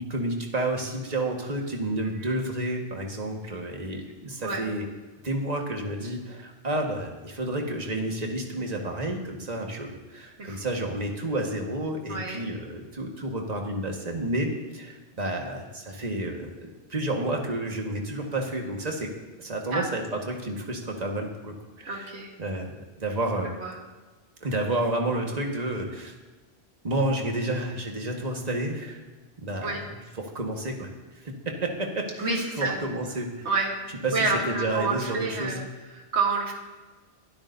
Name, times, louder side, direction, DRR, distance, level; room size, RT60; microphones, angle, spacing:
voice 1, 0.0-4.9 5.2-19.1 19.4-22.1 22.4-23.5 24.4-26.1 26.8-29.0 29.4-29.8 30.2-30.9 31.2-31.3 31.6-33.5 34.0-35.6, right 1 dB, 40° right, 1 dB, 1.7 m, -30 dB
voice 2, 12.1-12.4 19.7-19.9 21.9-22.3 23.6-23.8 29.6-29.8 32.2-32.8 33.4-33.7 34.1-35.6 35.9-36.5, right 4 dB, 80° right, 0 dB, 1.9 m, -28 dB
23.0 x 12.5 x 2.7 m, 1.3 s
omnidirectional pair, 1.1 m